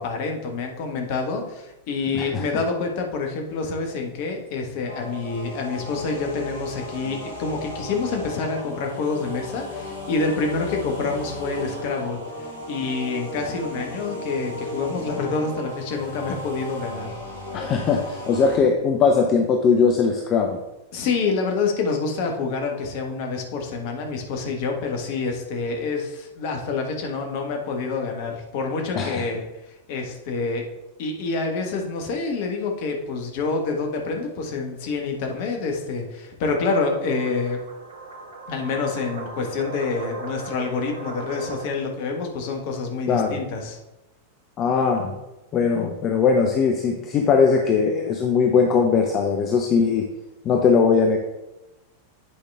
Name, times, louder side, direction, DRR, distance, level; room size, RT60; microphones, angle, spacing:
voice 1, 0.0-17.2 20.9-29.4 29.9-30.7 31.0-37.6 38.5-43.8, left 4 dB, 50° left, 2 dB, 1.4 m, -27 dB
voice 2, 2.1-2.5 17.5-20.6 28.9-29.2 43.1-43.4 44.6-45.2 45.5-50.1 50.4-51.2, left 5 dB, 30° left, 3 dB, 0.7 m, -20 dB
sound 1, 4.8-18.6, left 2 dB, 70° left, 2.7 m, -35 dB
sound 2, 36.5-41.7, right 3 dB, 65° right, 1.0 m, -37 dB
8.6 x 5.0 x 3.5 m, 0.98 s
figure-of-eight pair, 90°, 0 cm